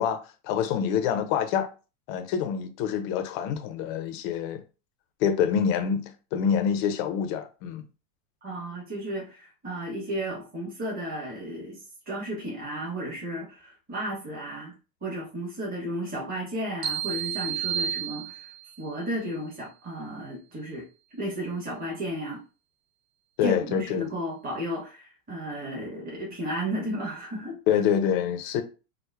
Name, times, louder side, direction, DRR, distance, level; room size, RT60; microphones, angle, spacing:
voice 1, 0.0-1.7 2.1-4.6 5.2-7.9 23.4-24.1 27.7-28.6, left 8 dB, 35° left, 0.4 m, -26 dB
voice 2, 8.4-14.7 15.0-18.5 18.8-20.8 21.2-22.4 23.4-27.8, right 1 dB, 20° right, 1.3 m, -33 dB
sound 1, 16.8-18.8, right 9 dB, 75° right, 1.0 m, -31 dB
4.3 x 2.1 x 2.3 m
hypercardioid pair, 130°, 47 cm